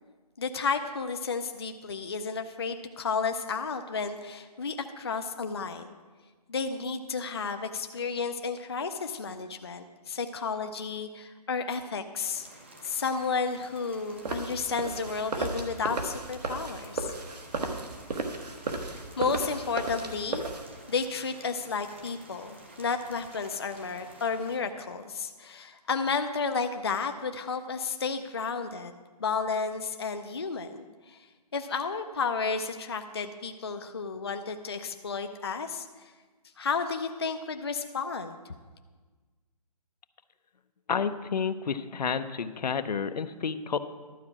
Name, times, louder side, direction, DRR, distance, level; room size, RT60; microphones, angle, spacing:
voice 1, 0.4-6.0 6.5-12.5 12.8-17.1 18.9-20.4 20.9-28.9 29.2-31.2 31.5-36.1 36.6-38.5, left 5 dB, 40° left, 7 dB, 0.4 m, -32 dB
Rain, 12.2-24.6, right 1 dB, 20° right, 0.5 m, -51 dB
sound 1, 14.3-20.7, right 3 dB, 75° right, 1.3 m, -35 dB
voice 2, 40.9-43.8, left 6 dB, 75° left, 12 dB, 0.6 m, -30 dB
12.0 x 4.8 x 7.3 m, 1.4 s
hypercardioid pair, 180°, 21 cm